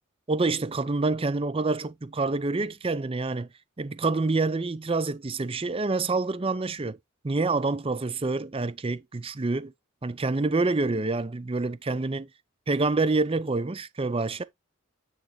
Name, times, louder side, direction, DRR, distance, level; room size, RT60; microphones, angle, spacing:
voice 1, 0.3-3.5 3.8-7.0 7.2-9.7 10.0-12.3 12.7-14.4, right 3 dB, 25° right, 0.5 m, -27 dB
9.2 x 4.6 x 2.9 m
head